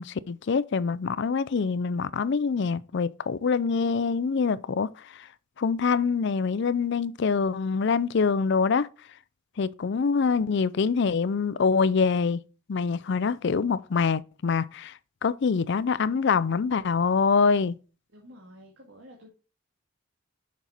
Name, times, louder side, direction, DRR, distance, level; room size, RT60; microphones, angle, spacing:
voice 1, 0.0-4.9 5.6-8.9 9.6-12.4 12.7-14.9 15.2-17.7, left 5 dB, 55° left, 0.4 m, -25 dB
voice 2, 18.1-19.3, equal, 60° right, 2.1 m, -50 dB
7.1 x 6.0 x 4.3 m
head